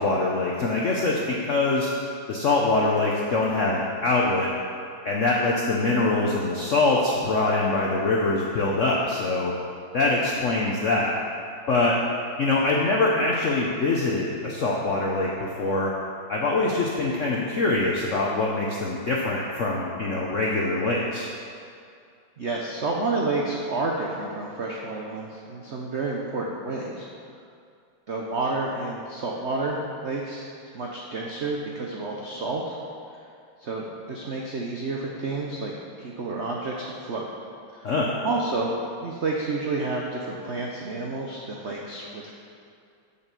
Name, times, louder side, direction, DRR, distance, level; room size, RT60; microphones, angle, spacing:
voice 1, 0.0-1.9 2.3-4.5 5.0-9.5 9.9-11.1 11.7-12.0 12.4-15.9 16.3-21.3 37.8-38.1, left 2 dB, 70° left, -3 dB, 0.7 m, -24 dB
voice 2, 22.4-27.1 28.1-30.5 30.7-32.8 33.6-35.7 36.0-37.3 37.7-37.8 38.2-38.7 39.0-42.3, right 3 dB, 75° right, -2 dB, 0.6 m, -30 dB
6.9 x 5.7 x 6.8 m, 2.4 s
omnidirectional pair, 2.3 m